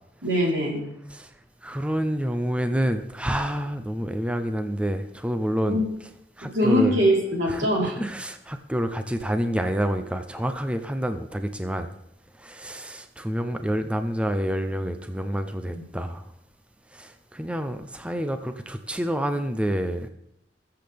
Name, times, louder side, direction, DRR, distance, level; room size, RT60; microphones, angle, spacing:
voice 1, 0.2-0.8 5.7-5.8 6.5-7.9 15.7-15.8, equal, 85° right, -2 dB, 3.9 m, -22 dB
voice 2, 1.6-5.8 6.4-7.0 7.5-11.9 12.4-16.2 16.9-20.1, equal, 5° right, 8 dB, 0.6 m, -28 dB
20.5 x 7.8 x 3.5 m, 0.78 s
head